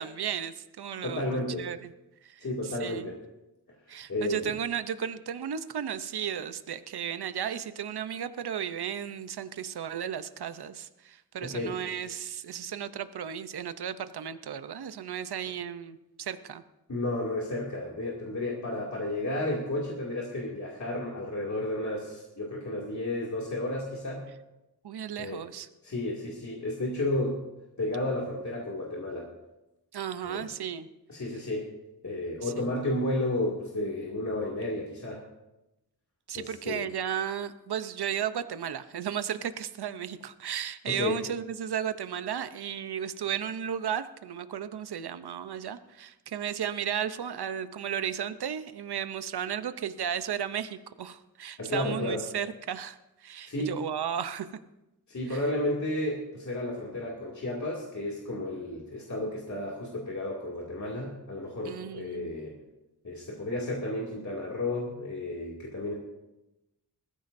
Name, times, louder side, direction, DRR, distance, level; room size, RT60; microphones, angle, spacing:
voice 1, 0.0-1.9 2.2-3.1 3.9-16.6 24.8-25.7 29.9-30.9 32.4-32.7 36.3-54.6 55.3-55.4 61.6-62.4, right 9 dB, 80° right, 12 dB, 0.8 m, -34 dB
voice 2, 1.0-1.7 2.4-3.2 4.1-4.5 11.4-11.8 16.9-24.3 25.2-25.4 25.8-27.4 27.8-29.3 30.3-30.4 31.1-31.6 32.0-35.2 36.3-36.9 40.9-41.2 51.6-52.2 53.4-53.8 55.1-62.5 63.0-65.9, left 1 dB, 45° left, -4 dB, 2.5 m, -32 dB
20.5 x 14.0 x 2.7 m, 0.96 s
wide cardioid pair, 110°, 39 cm